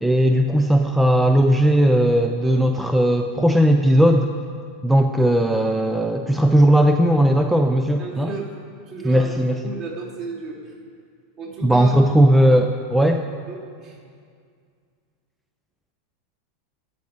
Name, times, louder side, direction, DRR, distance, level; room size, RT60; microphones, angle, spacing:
voice 1, 0.0-4.3 4.8-8.3 9.0-9.7 11.6-13.2, equal, 5° right, 5 dB, 0.4 m, -17 dB
voice 2, 8.0-8.5 8.9-10.7 11.4-11.9 13.5-14.0, right 4 dB, 40° right, -3 dB, 3.0 m, -33 dB
15.0 x 5.2 x 8.4 m, 2.2 s
supercardioid pair, 150°, 0 cm